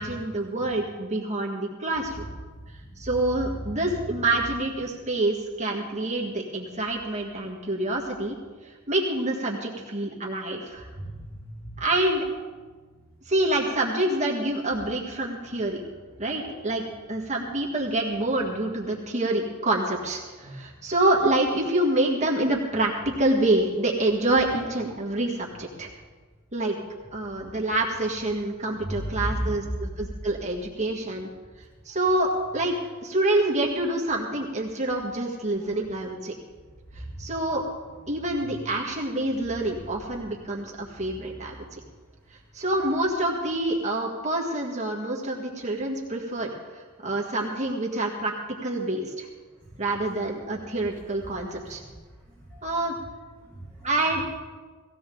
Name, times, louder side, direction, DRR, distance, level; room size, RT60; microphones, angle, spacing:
voice 1, 0.0-2.3 3.0-8.4 8.6-10.9 11.8-12.3 13.3-15.8 16.2-16.8 17.1-25.9 26.5-26.7 27.1-31.3 31.9-36.3 37.0-37.6 38.1-41.5 42.5-48.3 48.6-49.3 49.8-51.8 52.6-52.9 53.8-54.3, right 1 dB, 30° right, -1 dB, 1.8 m, -27 dB
voice 2, 2.7-4.3 10.9-11.8 16.5-16.6 18.9-19.0 24.6-24.7 28.8-29.9 31.9-32.1 32.4-32.6 37.0-37.2 38.1-38.5 39.8-39.9 49.6-49.9 51.6-51.9 52.5-52.8 53.4-53.9, right 1 dB, 10° left, -8 dB, 3.6 m, -36 dB
18.5 x 16.0 x 3.9 m, 1.4 s
head